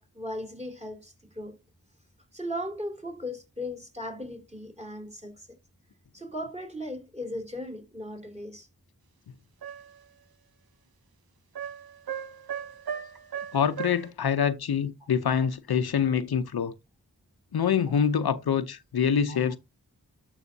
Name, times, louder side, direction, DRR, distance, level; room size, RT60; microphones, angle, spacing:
voice 1, 0.0-1.6 2.3-5.5 6.1-8.7 19.3-19.4, left 1 dB, 15° right, 3.0 m, -37 dB
sound 1, 9.6-10.0 11.5-14.1, right 8 dB, 80° right, 0.8 m, -37 dB
voice 2, 13.5-16.7 17.5-19.6, left 7 dB, 90° left, 0.7 m, -25 dB
12.0 x 5.5 x 2.7 m
wide cardioid pair, 55°, 37 cm